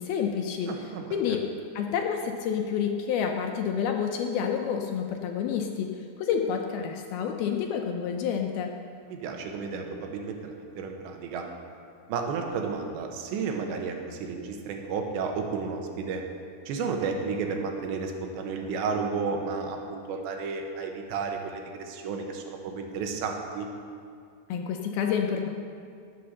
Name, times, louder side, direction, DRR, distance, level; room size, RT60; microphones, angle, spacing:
voice 1, 0.0-0.7 1.1-1.4 1.8-8.7 24.5-25.5, left 7 dB, 75° left, 3 dB, 2.4 m, -29 dB
voice 2, 0.7-1.4 9.1-11.5 12.1-16.2 16.7-23.7, right 5 dB, 85° right, 3 dB, 3.5 m, -32 dB
19.5 x 7.8 x 6.6 m, 2.3 s
omnidirectional pair, 5.0 m